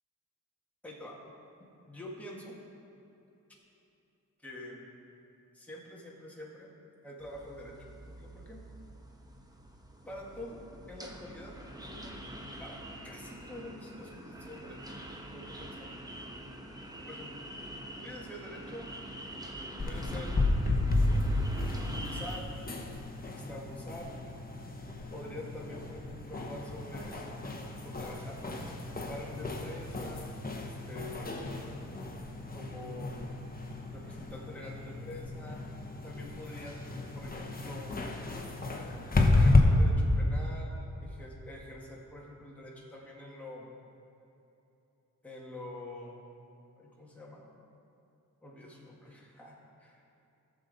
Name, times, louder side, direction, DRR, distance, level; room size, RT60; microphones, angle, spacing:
voice 1, 0.8-1.2 1.9-2.6 4.4-4.8 5.5-6.7 7.0-8.6 10.0-12.1 12.6-12.8 13.0-14.9 15.3-15.9 17.0-17.5 17.9-18.9 19.8-20.4 21.8-22.9 23.3-24.5 25.1-27.3 27.8-28.4 29.1-31.4 32.5-33.5 33.9-35.6 36.0-38.2 39.3-43.7 45.2-46.2 46.8-47.5 48.4-50.0, left 1 dB, 5° left, -4 dB, 1.7 m, -46 dB
sound 1, 7.2-22.4, right 1 dB, 10° right, 1.0 m, -45 dB
sound 2, 19.8-39.6, left 2 dB, 25° left, 1.1 m, -32 dB
14.0 x 6.9 x 4.1 m, 2.9 s
cardioid pair, 90°, 32 cm